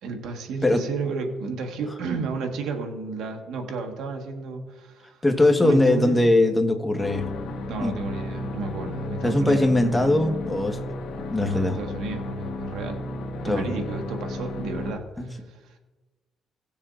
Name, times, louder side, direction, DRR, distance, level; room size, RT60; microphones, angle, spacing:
voice 1, 0.0-5.2 5.6-6.2 7.7-9.7 11.4-13.0 13.4-15.7, right 4 dB, 85° right, 3 dB, 1.5 m, -32 dB
voice 2, 5.2-7.3 7.8-7.9 9.2-10.8 11.3-11.8 13.4-13.7 15.2-15.3, left 2 dB, 15° left, 4 dB, 1.4 m, -21 dB
sound 1, 7.0-14.9, left 2 dB, 80° left, 1.2 m, -33 dB
18.5 x 7.1 x 2.5 m, 1.2 s
cardioid pair, 90°, 0 cm